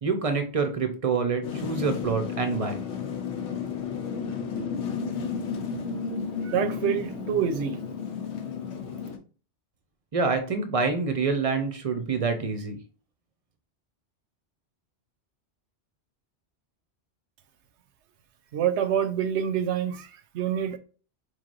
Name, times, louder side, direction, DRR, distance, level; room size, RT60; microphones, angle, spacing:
voice 1, 0.0-2.8 10.1-12.8, right 4 dB, 40° right, 0.6 m, -26 dB
sound 1, 1.4-9.2, left 6 dB, 85° left, 1.0 m, -32 dB
voice 2, 6.4-7.8 18.5-20.8, right 9 dB, 80° right, 0.9 m, -27 dB
4.1 x 3.1 x 2.5 m
omnidirectional pair, 1.2 m